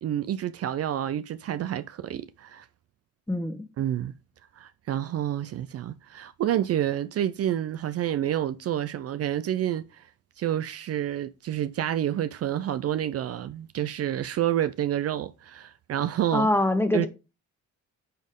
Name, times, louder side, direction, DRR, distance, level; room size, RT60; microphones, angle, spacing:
voice 1, 0.0-2.7 3.8-4.1 4.6-10.1 10.4-16.5 16.9-17.1, right 11 dB, 55° right, 0.5 m, -29 dB
voice 2, 3.3-3.6 16.3-17.1, left 1 dB, 10° left, 1.0 m, -24 dB
9.4 x 4.3 x 3.6 m
cardioid pair, 90°, 30 cm